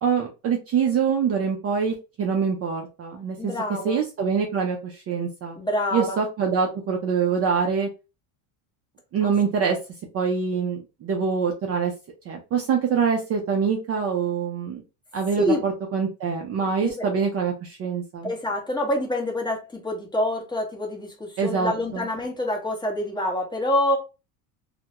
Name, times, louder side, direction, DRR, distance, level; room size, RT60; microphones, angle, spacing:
voice 1, 0.0-3.6 3.8-5.6 5.9-7.9 9.1-9.8 10.1-11.9 12.3-14.8 15.1-18.3 21.4-22.1, right 6 dB, 35° right, 0.5 m, -25 dB
voice 2, 3.4-4.0 5.6-6.2 9.2-9.3 15.4-15.6 16.7-17.1 18.2-24.0, left 1 dB, 10° left, 0.8 m, -26 dB
2.2 x 2.1 x 2.8 m
supercardioid pair, 115°, 43 cm